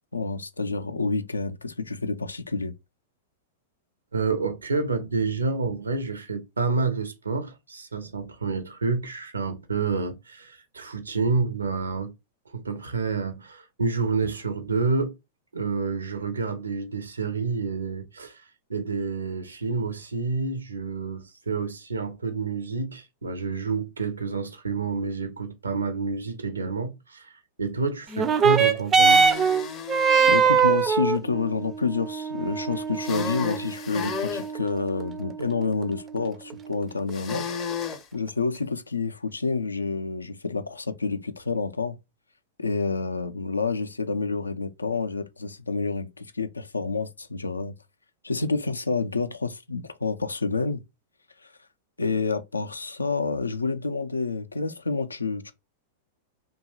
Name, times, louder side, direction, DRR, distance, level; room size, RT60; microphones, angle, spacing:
voice 1, 0.1-2.7 30.3-37.5 38.1-42.0 42.6-47.7 48.2-50.8 52.0-55.5, left 4 dB, 85° left, 0.3 m, -28 dB
voice 2, 4.1-12.1 12.5-15.1 15.5-18.4 18.7-29.3, right 4 dB, 80° right, 0.5 m, -29 dB
sound 1, 28.1-37.1 37.9-38.0, right 6 dB, 25° right, 0.3 m, -23 dB
sound 2, 29.0-30.5 33.0-34.5 37.1-38.0, left 6 dB, 30° left, 0.5 m, -33 dB
2.8 x 2.2 x 2.8 m
figure-of-eight pair, 100°, 0 cm